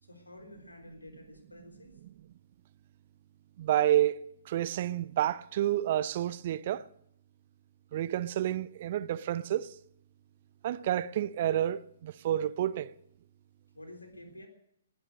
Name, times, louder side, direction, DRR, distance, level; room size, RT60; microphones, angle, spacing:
voice 1, 0.0-1.9 13.7-14.5, left 2 dB, 85° left, 3.7 m, -50 dB
voice 2, 3.6-4.2 4.5-6.9 7.9-9.7 10.6-12.9, right 12 dB, 45° right, 0.6 m, -29 dB
20.0 x 11.0 x 6.3 m
figure-of-eight pair, 125°, 0 cm